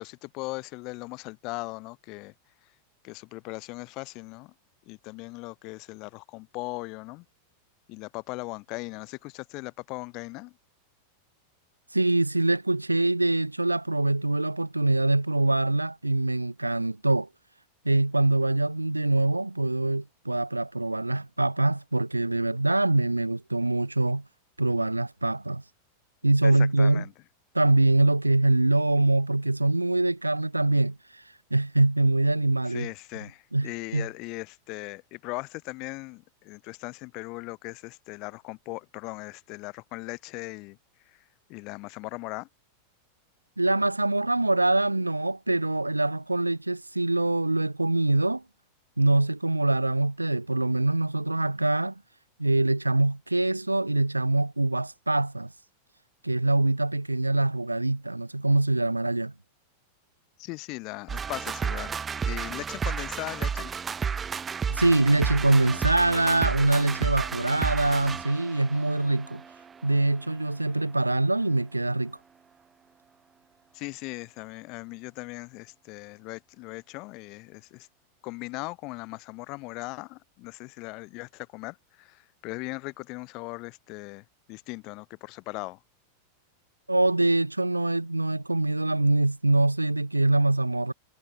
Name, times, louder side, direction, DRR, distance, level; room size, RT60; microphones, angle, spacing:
voice 1, 0.0-2.3 3.0-4.5 4.9-7.2 7.9-10.5 26.4-27.1 32.7-40.8 41.5-42.5 60.4-61.9 62.2-63.7 73.7-77.9 78.2-85.8, left 24 dB, 40° left, 0.7 m, -39 dB
voice 2, 11.9-17.3 17.8-24.2 24.6-25.6 26.2-27.0 27.5-31.2 31.5-32.9 33.2-34.1 43.6-48.4 49.0-51.9 52.4-55.5 56.2-59.3 64.7-69.4 69.8-72.2 86.9-90.9, right 2 dB, 85° right, 0.5 m, -24 dB
sound 1, 61.1-70.5, right 6 dB, 20° right, 1.1 m, -32 dB
figure-of-eight pair, 90°, 0 cm